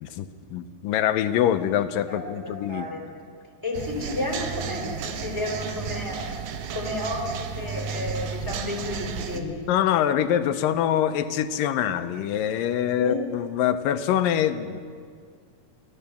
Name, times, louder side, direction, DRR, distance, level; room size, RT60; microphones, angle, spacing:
voice 1, 0.0-2.9 9.4-14.8, left 10 dB, 90° left, 10 dB, 2.6 m, -24 dB
voice 2, 2.1-3.0 3.6-6.3 6.7-9.5 13.0-13.2, left 2 dB, 5° right, -1 dB, 4.4 m, -31 dB
sound 1, 3.7-9.4, right 6 dB, 85° right, 2.8 m, -33 dB
29.0 x 13.5 x 7.1 m, 2.1 s
omnidirectional pair, 3.8 m